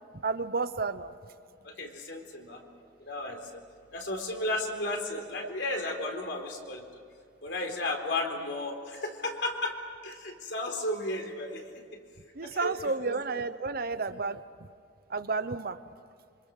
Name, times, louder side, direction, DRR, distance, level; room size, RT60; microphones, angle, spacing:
voice 1, 0.2-1.1 12.3-14.4 15.1-15.8, right 4 dB, 55° right, 12 dB, 0.9 m, -31 dB
voice 2, 1.6-2.6 3.0-3.6 3.9-6.8 7.4-9.8 10.0-11.8 12.4-13.1, left 2 dB, 65° left, 3 dB, 4.1 m, -34 dB
27.0 x 26.0 x 6.7 m, 2.3 s
head